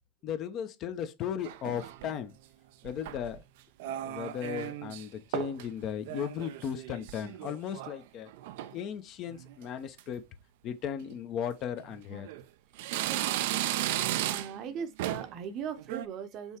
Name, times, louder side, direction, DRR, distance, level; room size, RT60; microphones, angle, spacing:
voice 1, 0.2-2.3 2.8-3.4 3.8-8.3 8.7-10.2 10.6-12.3, left 9 dB, 45° left, 0.7 m, -36 dB
sound 1, 1.4-2.2 2.9-3.4 3.8-5.1 5.3-5.7 6.0-8.0 8.3-8.8 9.3-9.6 10.0-10.1 11.0-11.2 11.8-12.4 12.8-14.7 15.0-15.4 15.8-16.1, right 13 dB, 65° right, 0.4 m, -35 dB
voice 2, 13.0-13.5 14.3-16.6, right 7 dB, 45° right, 0.7 m, -39 dB
5.4 x 3.1 x 2.9 m
hypercardioid pair, 85°, 0 cm